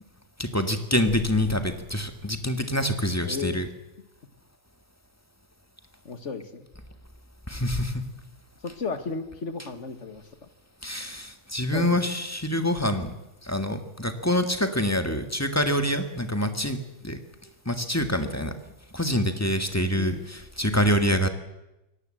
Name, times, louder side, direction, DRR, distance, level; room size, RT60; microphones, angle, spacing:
voice 1, 0.4-3.7 7.5-8.0 10.8-13.1 13.4-16.8 17.0-17.2 17.7-18.5 18.9-20.1 20.6-21.3, equal, 15° left, 7 dB, 1.8 m, -26 dB
voice 2, 3.3-3.6 6.1-6.6 8.6-10.5 11.7-12.1 19.9-20.2, left 4 dB, 70° left, 9 dB, 2.0 m, -34 dB
24.0 x 17.5 x 7.8 m, 0.95 s
omnidirectional pair, 1.3 m